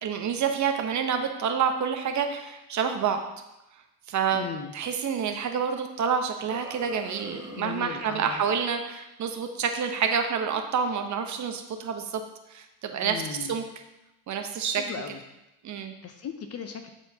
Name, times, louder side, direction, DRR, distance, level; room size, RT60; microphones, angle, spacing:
voice 1, 0.0-3.2 4.1-4.4 4.7-12.2 12.5-13.2 13.5-13.6 14.3-14.8 15.6-15.9, right 7 dB, 35° right, 5 dB, 0.9 m, -28 dB
voice 2, 4.3-4.7 7.6-8.4 13.0-13.6 14.7-15.2 16.0-16.9, left 7 dB, 30° left, 7 dB, 0.6 m, -37 dB
sound 1, 6.4-8.6, equal, 10° right, 1.0 m, -44 dB
11.5 x 4.4 x 2.8 m, 0.93 s
supercardioid pair, 105°, 48 cm